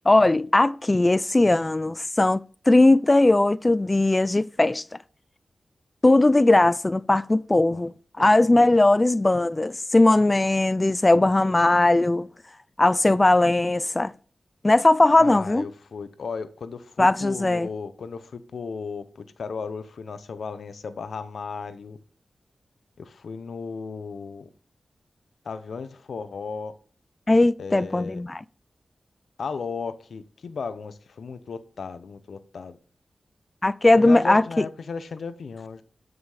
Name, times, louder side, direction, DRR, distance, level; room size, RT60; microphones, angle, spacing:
voice 1, 0.1-2.4 2.7-4.8 6.0-12.3 12.8-14.1 14.6-15.7 17.0-17.7 27.3-28.4 33.6-34.5, left 2 dB, 30° left, 0.5 m, -19 dB
voice 2, 15.2-22.0 23.0-24.5 25.4-26.7 27.6-28.2 29.4-32.8 34.0-35.8, left 5 dB, 80° left, 0.9 m, -35 dB
13.0 x 6.1 x 5.0 m
cardioid pair, 40°, 0 cm